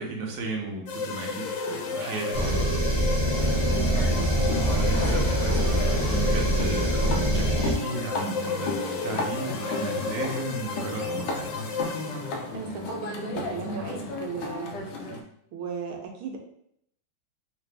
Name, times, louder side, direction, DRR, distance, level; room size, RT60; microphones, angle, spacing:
voice 1, 0.0-2.7 4.1-4.2 4.6-11.5, right 2 dB, 65° right, 0 dB, 1.1 m, -35 dB
sound 1, 0.9-12.6, left 4 dB, 90° left, 1.5 m, -33 dB
sound 2, 2.3-7.7, right 1 dB, 35° right, 0.9 m, -24 dB
sound 3, 3.3-15.2, left 2 dB, 70° left, 1.1 m, -34 dB
voice 2, 3.7-4.7 12.5-14.7 15.5-16.4, right 5 dB, 85° right, 1 dB, 1.5 m, -36 dB
3.8 x 2.5 x 3.3 m, 0.72 s
omnidirectional pair, 2.3 m